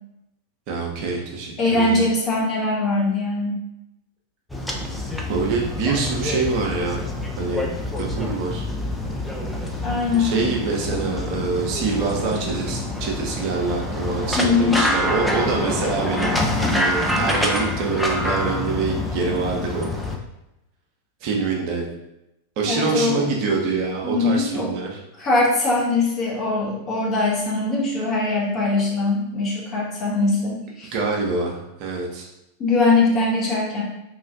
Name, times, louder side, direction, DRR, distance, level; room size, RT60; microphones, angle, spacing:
voice 1, 0.7-2.1 5.3-7.0 7.4-7.7 8.0-8.6 10.2-16.4 16.7-19.9 21.2-21.9 22.6-25.0 30.9-32.3, right 4 dB, 45° right, -1 dB, 0.7 m, -25 dB
voice 2, 1.6-3.6 9.8-10.5 12.7-12.8 14.4-14.9 22.7-23.3 24.0-24.7 25.2-30.9 32.6-33.8, left 3 dB, 30° left, -4 dB, 1.1 m, -21 dB
sound 1, 4.5-20.2, left 1 dB, 5° left, 0.4 m, -26 dB
3.1 x 2.4 x 3.9 m, 0.89 s
figure-of-eight pair, 90°, 0 cm